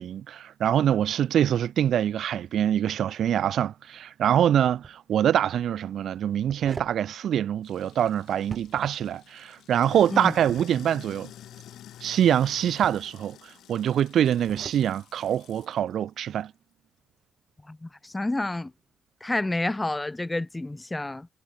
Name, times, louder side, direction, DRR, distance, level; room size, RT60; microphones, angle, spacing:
voice 1, 0.0-11.3 12.0-16.5, right 10 dB, 65° right, 0.5 m, -24 dB
sound 1, 4.7-5.0 6.2-7.0 8.4-9.0 10.2-10.7 12.5-13.1 14.2-14.8, right 5 dB, 35° right, 4.0 m, -42 dB
Sink (filling or washing), 7.6-15.8, left 11 dB, 75° left, 7.5 m, -48 dB
voice 2, 17.7-18.7 19.2-21.3, left 2 dB, 15° left, 0.6 m, -29 dB
cardioid pair, 90°, 0 cm